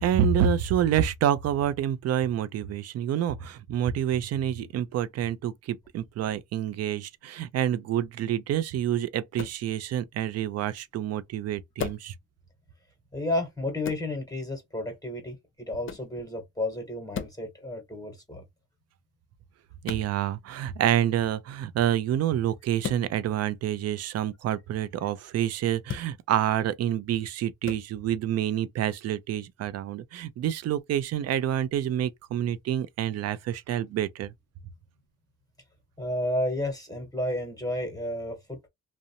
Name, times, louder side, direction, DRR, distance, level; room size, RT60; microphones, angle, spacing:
voice 1, 0.0-12.1 19.8-34.3, right 10 dB, 55° right, 0.4 m, -28 dB
sound 1, 9.3-9.6 11.8-12.1 13.8-14.1 15.8-16.1 17.1-17.4 19.8-20.1 22.8-23.1 25.8-26.1 27.6-27.8, left 8 dB, 40° left, 0.6 m, -35 dB
voice 2, 13.1-15.4 15.7-18.4 36.0-38.7, left 1 dB, 10° left, 1.0 m, -31 dB
2.5 x 2.1 x 2.7 m
cardioid pair, 90°, 30 cm